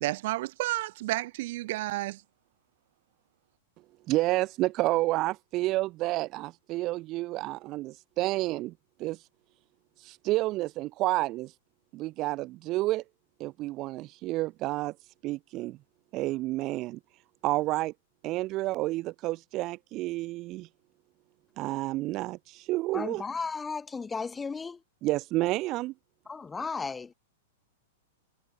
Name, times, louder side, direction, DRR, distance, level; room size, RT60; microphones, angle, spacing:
voice 1, 0.0-2.2, right 18 dB, 60° right, 1.7 m, -31 dB
voice 2, 4.1-8.7 9.0-9.2 10.0-11.5 11.9-13.0 13.4-15.0 15.2-15.8 16.1-17.0 17.4-17.9 18.2-20.7 21.6-23.2 25.0-25.9, right 18 dB, 35° right, 2.6 m, -30 dB
voice 3, 22.9-24.8 26.3-27.1, left 5 dB, 10° left, 4.8 m, -35 dB
hypercardioid pair, 135°, 0 cm